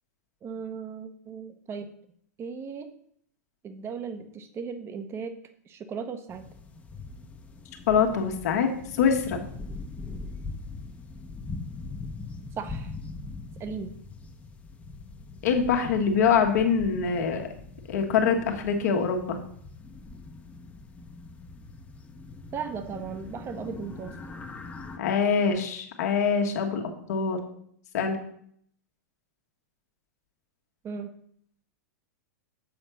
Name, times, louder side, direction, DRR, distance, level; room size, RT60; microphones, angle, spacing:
voice 1, 0.4-1.9 2.4-2.9 3.6-5.4 5.7-6.4 12.6-12.9 13.6-13.9 22.5-24.2 30.8-31.1, right 6 dB, 30° right, 8 dB, 0.9 m, -36 dB
sound 1, 6.3-25.0, left 3 dB, 15° left, 0.9 m, -42 dB
voice 2, 7.9-9.4 15.4-17.5 17.9-19.4 25.0-26.8 27.1-27.4 27.9-28.2, left 6 dB, 70° left, 3 dB, 1.4 m, -24 dB
7.2 x 4.4 x 6.2 m, 0.65 s
hypercardioid pair, 115°, 9 cm